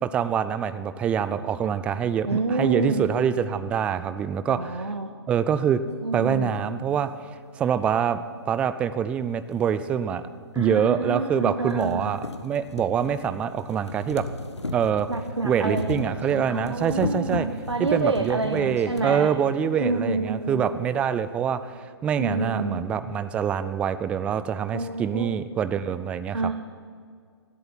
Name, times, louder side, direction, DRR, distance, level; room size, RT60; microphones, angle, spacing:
voice 1, 0.0-4.9 5.3-5.8 6.1-7.1 7.5-8.2 8.5-10.2 10.6-14.2 14.7-15.1 15.4-17.5 17.8-26.5, right 8 dB, 10° right, 12 dB, 0.4 m, -25 dB
voice 2, 2.3-3.1 4.5-5.1 6.0-6.6 10.5-12.1 15.1-19.3 19.8-20.7 22.2-22.8 24.7-25.3 26.3-26.5, right 3 dB, 80° right, 5 dB, 1.2 m, -28 dB
sound 1, 9.5-9.6 10.6-10.7 11.1-11.2 11.5-19.1 20.0-20.1 20.3-20.4, left 2 dB, 80° left, 1.4 m, -35 dB
17.5 x 8.4 x 9.9 m, 2.1 s
figure-of-eight pair, 130°, 14 cm